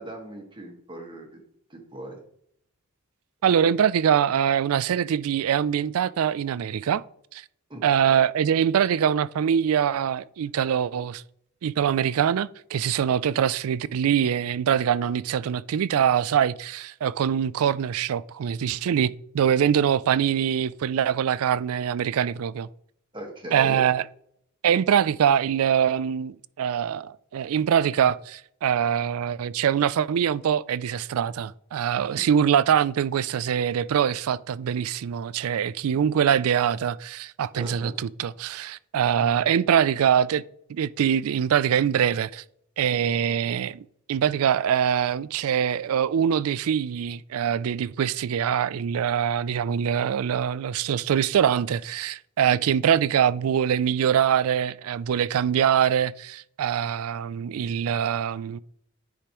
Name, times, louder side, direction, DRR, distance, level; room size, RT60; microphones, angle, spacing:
voice 1, 0.0-1.4 1.7-2.2 7.7-7.8 23.1-23.9 32.1-32.2 37.5-38.0 39.2-39.3, right 1 dB, 20° right, 1.5 m, -39 dB
voice 2, 3.4-7.0 7.3-7.4 7.8-11.2 11.6-22.7 23.5-24.0 24.6-40.4 40.7-42.4 42.8-58.6, right 8 dB, 70° right, 0.3 m, -23 dB
10.0 x 5.1 x 3.0 m
head